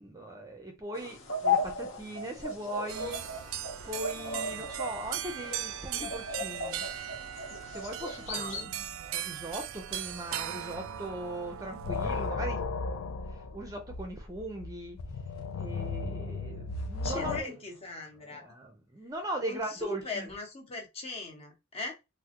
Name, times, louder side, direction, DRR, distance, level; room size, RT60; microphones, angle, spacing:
voice 1, 0.0-3.3 3.9-6.8 7.7-8.7 9.0-13.0 13.5-15.0 15.6-17.5 18.6-20.0, right 1 dB, 15° right, 0.5 m, -39 dB
sound 1, 1.0-8.6, left 3 dB, 65° left, 1.0 m, -35 dB
sound 2, 2.9-12.3, right 11 dB, 70° right, 0.3 m, -39 dB
voice 2, 4.2-4.7 8.1-8.8 12.4-12.5 17.0-18.5 19.4-21.9, left 3 dB, 30° left, 0.9 m, -40 dB
sound 3, 10.7-11.2 11.5-17.4, left 3 dB, 85° left, 0.5 m, -35 dB
3.6 x 2.1 x 2.9 m
head